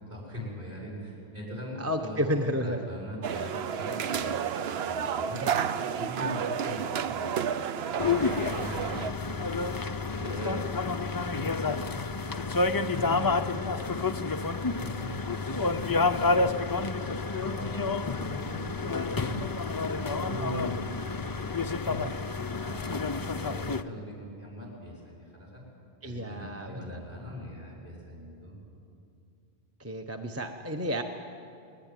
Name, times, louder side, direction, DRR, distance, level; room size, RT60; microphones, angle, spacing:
voice 1, 0.0-5.5 6.0-7.9 8.2-10.6 11.0-12.5 12.9-14.4 14.7-16.9 17.3-18.6 19.1-21.2 21.5-22.1 22.6-25.6 26.0-28.6, equal, 50° right, -3 dB, 7.5 m, -41 dB
voice 2, 1.8-2.8 10.2-10.7 26.0-27.0 29.8-31.0, equal, 15° right, 4 dB, 0.9 m, -31 dB
sound 1, 3.2-9.1, right 7 dB, 70° right, 1.0 m, -31 dB
sound 2, 8.0-23.8, left 3 dB, 30° left, 0.4 m, -29 dB
21.0 x 20.0 x 9.2 m, 2.5 s
omnidirectional pair, 1.1 m